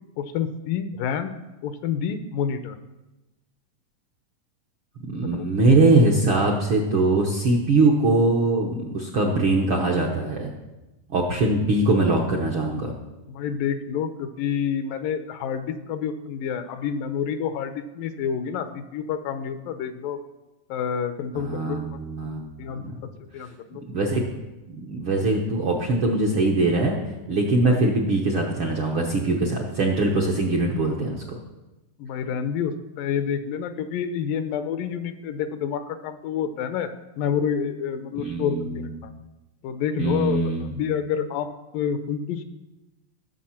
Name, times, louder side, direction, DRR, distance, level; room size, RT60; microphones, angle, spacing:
voice 1, 0.2-1.3 1.6-2.8 5.3-5.5 13.3-20.2 20.7-21.8 22.6-22.8 23.3-23.8 27.7-27.9 32.0-36.9 37.2-38.7 39.0-39.1 39.6-41.5 41.7-42.4, left 7 dB, 80° left, 10 dB, 2.5 m, -28 dB
voice 2, 5.1-10.5 11.1-12.9 21.3-22.4 22.7-22.9 23.9-24.2 24.7-27.0 27.3-31.4 38.2-38.9 40.0-40.7, right 2 dB, 60° right, -1 dB, 1.4 m, -22 dB
15.5 x 7.0 x 5.8 m, 1.0 s
omnidirectional pair, 3.9 m